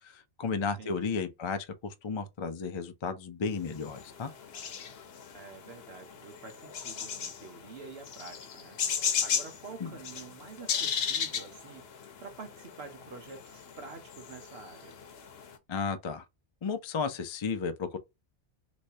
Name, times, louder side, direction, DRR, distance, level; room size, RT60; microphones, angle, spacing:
voice 1, 0.0-4.3 9.8-9.9 15.7-16.2 16.6-18.0, left 5 dB, 45° left, 0.4 m, -33 dB
voice 2, 0.6-1.3 5.3-14.9, right 4 dB, 65° right, 1.3 m, -48 dB
sound 1, 3.7-15.6, left 7 dB, 65° left, 0.9 m, -36 dB
3.2 x 3.0 x 2.7 m
omnidirectional pair, 1.1 m